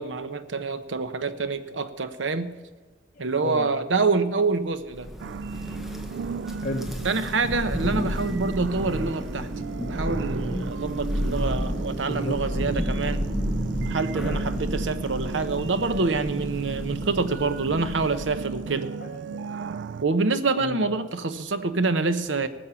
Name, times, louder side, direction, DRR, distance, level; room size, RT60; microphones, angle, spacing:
voice 1, 0.0-2.5 3.2-5.1 7.0-9.5 9.8-13.2 13.9-18.9 20.0-22.5, right 3 dB, 85° right, 11 dB, 0.9 m, -26 dB
voice 2, 3.1-3.7 5.5-6.2 6.5-6.9 12.1-12.7 14.1-14.3 18.5-18.6 19.0-19.8 20.6-20.8, left 1 dB, 50° left, 0 dB, 1.1 m, -36 dB
Thunder, 4.9-18.6, equal, ahead, 1.2 m, -31 dB
sound 1, 5.2-20.0, right 5 dB, 65° right, 0.3 m, -36 dB
18.5 x 7.3 x 7.0 m, 1.3 s
head